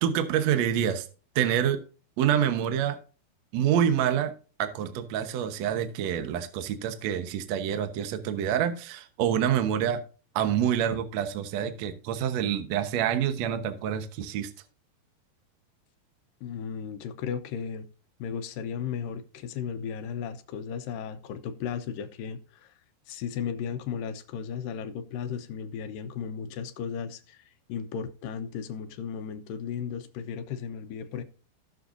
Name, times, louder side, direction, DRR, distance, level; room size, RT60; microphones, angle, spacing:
voice 1, 0.0-1.1 1.3-1.8 2.2-3.0 3.5-4.3 4.6-10.0 10.3-14.5, right 9 dB, 70° right, 1.6 m, -27 dB
voice 2, 16.4-17.9 18.2-22.7 23.1-27.4 27.7-31.2, left 7 dB, 75° left, 2.3 m, -35 dB
18.0 x 6.6 x 2.6 m
omnidirectional pair, 4.6 m